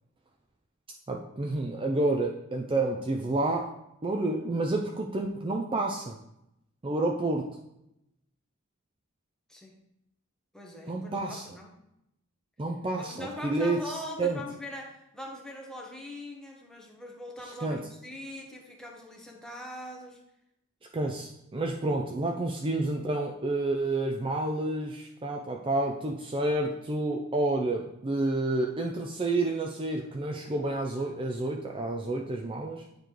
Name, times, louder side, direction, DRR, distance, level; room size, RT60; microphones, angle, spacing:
voice 1, 1.1-3.7 4.0-6.2 6.8-7.5 10.9-11.5 12.6-14.4 17.4-17.8 20.9-32.8, right 2 dB, 25° right, 1 dB, 0.5 m, -29 dB
voice 2, 10.5-11.8 13.0-20.2, left 1 dB, 5° left, -1 dB, 1.1 m, -42 dB
9.1 x 3.3 x 4.5 m, 0.82 s
head